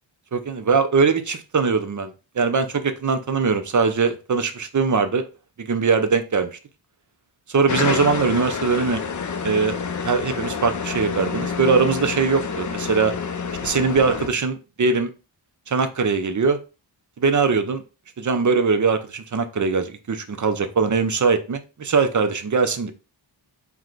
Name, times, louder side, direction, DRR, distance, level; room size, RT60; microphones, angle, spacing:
voice 1, 0.3-5.3 5.6-6.6 7.5-9.0 9.4-9.8 10.0-13.1 13.6-15.1 15.7-16.6 17.2-17.8 18.2-22.9, right 5 dB, 40° right, 0.5 m, -21 dB
sound 1, 7.7-14.3, left 6 dB, 40° left, 0.4 m, -28 dB
4.6 x 2.2 x 3.8 m
wide cardioid pair, 115°, 48 cm